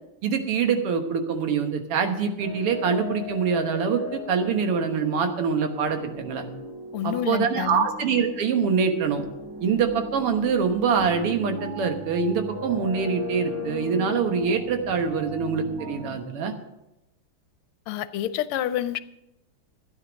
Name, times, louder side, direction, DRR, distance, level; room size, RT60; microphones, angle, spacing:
voice 1, 0.2-6.5 7.0-9.2 9.6-16.5, right 6 dB, 90° right, 6 dB, 2.2 m, -24 dB
sound 1, 2.4-16.1, left 2 dB, 65° right, 4.8 m, -38 dB
voice 2, 6.9-7.9 17.9-19.0, left 12 dB, 80° left, 13 dB, 1.5 m, -28 dB
13.0 x 9.6 x 5.1 m, 0.89 s
omnidirectional pair, 2.4 m